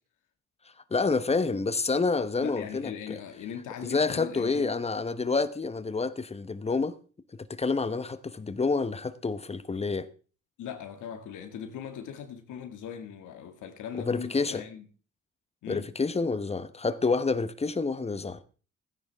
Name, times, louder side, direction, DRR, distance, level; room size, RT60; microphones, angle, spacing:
voice 1, 0.9-3.2 3.8-6.9 7.3-10.1 14.0-14.6 15.7-18.4, left 4 dB, 20° left, 1.0 m, -28 dB
voice 2, 2.4-4.7 10.6-14.9 15.6-15.8, left 8 dB, 80° left, 2.1 m, -39 dB
16.0 x 9.9 x 3.5 m
cardioid pair, 90°, 30 cm